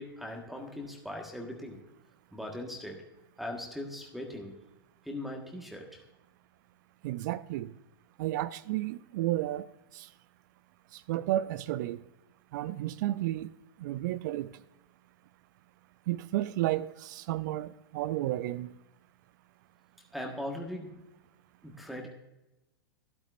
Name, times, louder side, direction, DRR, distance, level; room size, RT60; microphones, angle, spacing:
voice 1, 0.0-1.9 2.3-3.1 3.4-4.6 5.0-6.0 20.1-21.0 21.6-22.1, left 1 dB, ahead, 1.5 m, -40 dB
voice 2, 7.0-7.7 8.2-9.7 9.9-10.1 10.9-12.0 12.5-13.5 13.8-14.5 16.1-18.7, right 15 dB, 55° right, 0.4 m, -32 dB
12.5 x 11.5 x 2.5 m
hypercardioid pair, 105°, 12 cm